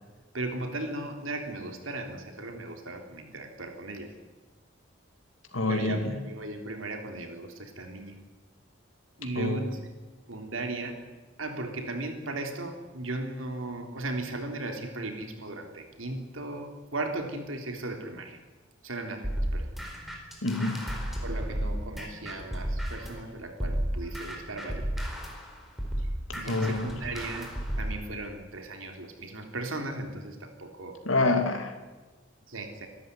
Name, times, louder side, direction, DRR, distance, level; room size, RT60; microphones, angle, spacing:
voice 1, 0.3-4.1 5.7-8.2 9.2-9.9 10.3-11.0 11.4-18.4 18.8-19.7 21.2-24.9 26.0-26.1 26.4-27.5 27.8-31.0 32.5-32.9, right 2 dB, 90° right, 4 dB, 3.5 m, -37 dB
voice 2, 5.5-6.0 9.4-9.6 20.4-20.8 26.4-26.9 31.1-31.7, left 2 dB, 85° left, 4 dB, 2.6 m, -26 dB
sound 1, 19.2-23.2 23.6-28.0, equal, ahead, 4.4 m, -33 dB
25.5 x 13.0 x 9.6 m, 1.2 s
head